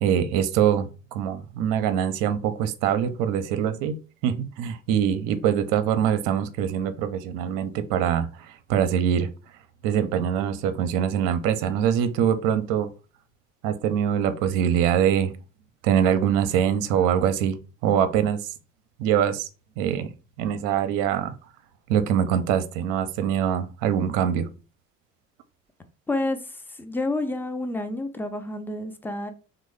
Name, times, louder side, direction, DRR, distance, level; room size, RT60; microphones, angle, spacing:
voice 1, 0.0-4.0 4.2-9.3 9.8-12.9 13.6-15.3 15.8-18.4 19.0-19.5 19.8-20.1 20.4-21.3 21.9-24.5, right 9 dB, 60° right, 0.5 m, -23 dB
voice 2, 26.1-29.3, left 2 dB, 5° left, 0.3 m, -29 dB
3.0 x 2.0 x 3.3 m
hypercardioid pair, 60°, 38 cm